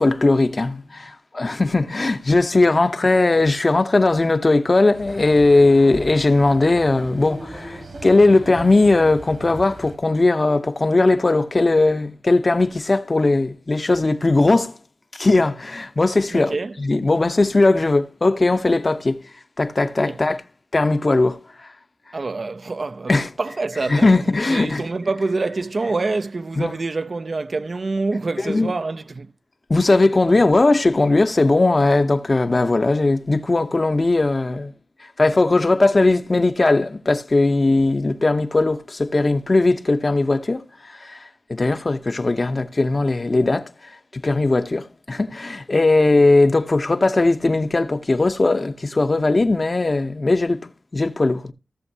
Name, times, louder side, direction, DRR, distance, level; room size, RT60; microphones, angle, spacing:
voice 1, 0.0-14.8 15.1-16.5 16.8-19.2 19.6-20.4 20.7-21.4 23.1-23.3 23.9-24.8 26.6-26.7 28.5-28.7 29.7-34.7 35.2-43.7 44.1-51.5, left 2 dB, 35° left, 0.8 m, -18 dB
sound 1, 4.9-10.0, right 1 dB, 65° right, 2.4 m, -38 dB
voice 2, 16.3-16.8 20.1-20.2 22.1-24.2 24.5-29.3, right 3 dB, 50° right, 0.6 m, -26 dB
16.5 x 7.1 x 2.7 m
wide cardioid pair, 85°, 0 cm